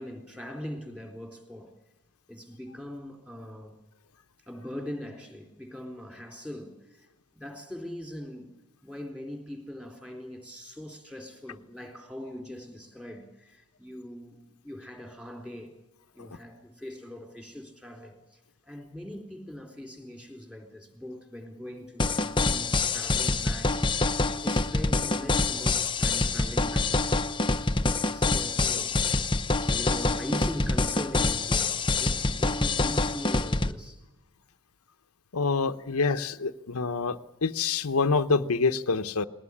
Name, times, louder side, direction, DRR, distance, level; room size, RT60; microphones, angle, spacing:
voice 1, 0.0-1.7 2.3-3.8 4.5-7.1 7.3-8.5 8.8-14.4 14.6-15.7 16.1-27.4 28.1-29.0 29.7-34.0, left 1 dB, 5° right, 3.7 m, -41 dB
sound 1, 22.0-33.7, left 3 dB, 20° left, 0.8 m, -26 dB
voice 2, 35.3-39.3, left 4 dB, 80° left, 0.9 m, -26 dB
20.5 x 18.5 x 9.9 m
head